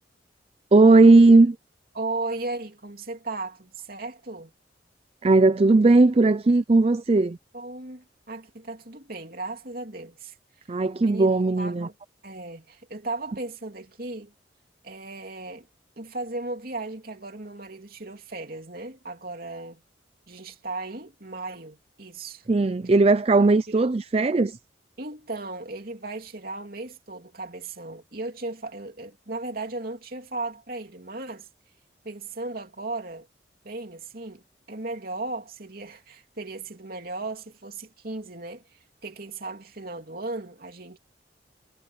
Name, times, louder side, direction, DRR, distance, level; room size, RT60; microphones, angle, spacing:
voice 1, 0.7-1.6 5.2-7.4 10.7-11.9 22.5-24.6, right 3 dB, 35° right, 0.4 m, -17 dB
voice 2, 1.9-4.5 7.5-10.4 11.0-11.3 11.6-11.9 12.2-14.3 14.8-15.7 16.0-19.8 20.3-22.5 23.7-23.8 25.0-31.5 32.0-33.3 33.6-41.0, right 2 dB, 55° right, 3.1 m, -36 dB
head